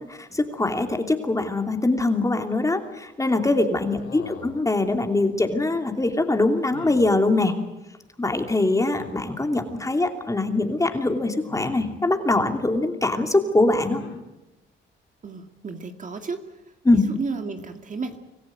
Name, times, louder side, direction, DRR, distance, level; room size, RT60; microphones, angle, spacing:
voice 1, 0.0-7.5 8.2-14.0 16.8-17.1, left 2 dB, 15° left, 5 dB, 2.9 m, -23 dB
voice 2, 3.6-4.0 15.2-16.4 16.9-18.2, right 4 dB, 40° right, 6 dB, 2.1 m, -33 dB
sound 1, 4.0-4.6 6.7-7.1 8.9-9.2 11.5-12.0 13.8-14.2, left 7 dB, 90° left, 2.9 m, -41 dB
25.5 x 15.0 x 9.2 m, 1.0 s
cardioid pair, 90°, 20 cm